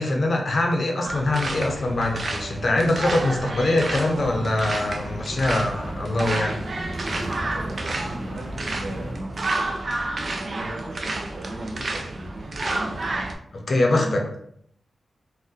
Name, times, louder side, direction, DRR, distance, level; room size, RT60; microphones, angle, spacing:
voice 1, 0.0-6.6 13.5-14.2, left 2 dB, 50° left, 2 dB, 0.6 m, -23 dB
sound 1, 1.0-13.3, right 2 dB, 50° right, 0.4 m, -30 dB
sound 2, 4.2-9.2, equal, 25° right, 0.9 m, -35 dB
voice 2, 7.5-9.8 10.5-13.3 13.9-14.3, right 1 dB, 85° right, -4 dB, 1.0 m, -37 dB
2.7 x 2.1 x 3.5 m, 0.69 s
wide cardioid pair, 85°, 0 cm